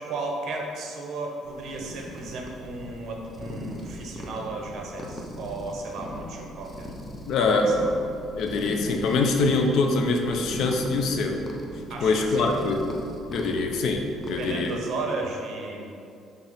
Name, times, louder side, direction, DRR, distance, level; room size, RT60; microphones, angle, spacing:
voice 1, 0.0-6.9 7.4-7.9 11.9-12.5 14.4-15.9, right 3 dB, 60° right, 0 dB, 1.2 m, -34 dB
sound 1, 1.5-14.8, left 1 dB, 15° left, 0.8 m, -39 dB
voice 2, 7.3-7.7 8.4-11.4 12.0-12.8 13.3-14.7, left 3 dB, 65° left, 3 dB, 0.7 m, -24 dB
5.8 x 3.9 x 5.7 m, 2.5 s
cardioid pair, 130°, 0 cm